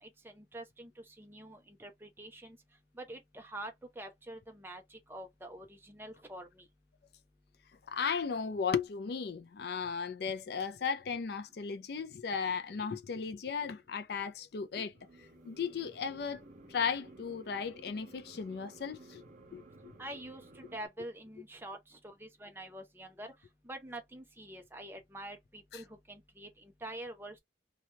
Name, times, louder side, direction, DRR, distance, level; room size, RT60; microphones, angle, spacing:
voice 1, 0.0-2.6 2.9-6.7 20.0-23.3 23.6-27.4, right 1 dB, 10° right, 0.6 m, -46 dB
voice 2, 7.9-14.9 15.4-16.4 16.7-19.2 19.5-19.6 25.7-25.8, left 6 dB, 55° left, 0.4 m, -35 dB
sound 1, 14.9-20.9, right 2 dB, 40° right, 1.0 m, -55 dB
2.8 x 2.2 x 2.7 m
head